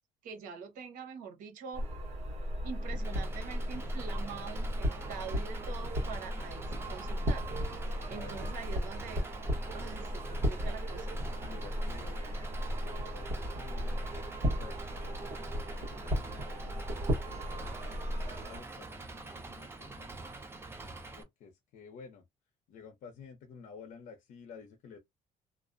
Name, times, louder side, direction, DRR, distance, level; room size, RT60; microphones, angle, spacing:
voice 1, 0.2-1.9 2.6-7.4 8.1-9.2 9.7-11.1, right 6 dB, 75° right, 0.9 m, -44 dB
sound 1, 1.7-18.6, equal, 50° right, 1.1 m, -35 dB
Engine, 3.0-21.2, right 3 dB, 15° right, 0.5 m, -46 dB
voice 2, 8.0-8.4 11.4-14.3 14.6-17.9 18.5-20.1 21.2-22.3 22.7-25.0, left 5 dB, 70° left, 0.7 m, -52 dB
2.4 x 2.1 x 2.4 m
cardioid pair, 125°, 14 cm